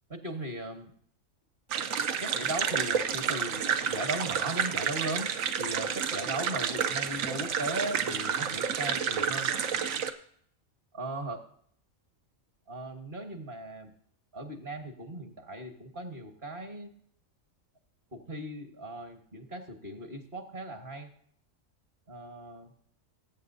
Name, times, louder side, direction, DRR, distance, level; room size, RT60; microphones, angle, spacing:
voice 1, 0.1-0.9 2.2-5.3 5.6-9.5 10.9-11.4 12.7-13.9 14.3-16.9 18.1-21.1 22.1-22.7, right 1 dB, 40° right, 5 dB, 1.5 m, -38 dB
sound 1, 1.7-10.1, right 7 dB, 85° right, 1.1 m, -30 dB
20.5 x 8.6 x 2.7 m, 0.63 s
omnidirectional pair, 1.4 m